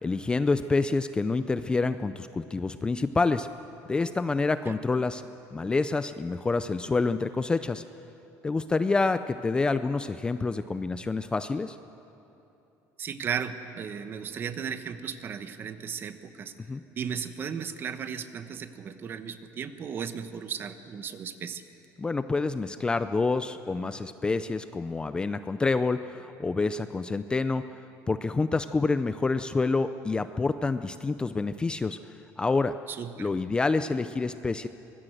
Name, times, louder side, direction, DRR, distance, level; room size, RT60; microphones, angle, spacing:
voice 1, 0.0-3.5 3.9-5.2 5.5-7.8 8.4-11.8 16.7-16.8 22.0-27.6 28.1-32.0 32.4-32.7 33.2-34.7, left 3 dB, 15° left, 11 dB, 0.5 m, -27 dB
voice 2, 13.0-16.5 16.9-21.6 32.9-33.3, right 7 dB, 35° right, 10 dB, 1.1 m, -35 dB
24.0 x 20.0 x 7.8 m, 2.9 s
cardioid pair, 150°, 7 cm